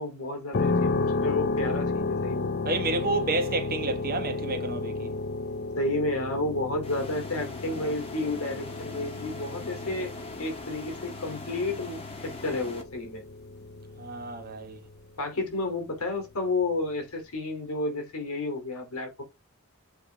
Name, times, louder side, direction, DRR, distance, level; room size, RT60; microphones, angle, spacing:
voice 1, 0.0-2.6 5.7-10.1 10.4-13.2 15.2-19.2, left 2 dB, 75° left, 2.8 m, -31 dB
sound 1, 0.5-15.2, left 3 dB, 45° left, 0.5 m, -32 dB
voice 2, 2.6-5.1 14.0-14.8, right 2 dB, 45° right, 1.4 m, -30 dB
sound 2, 6.8-12.8, left 2 dB, 25° left, 1.4 m, -42 dB
8.1 x 3.5 x 3.8 m
head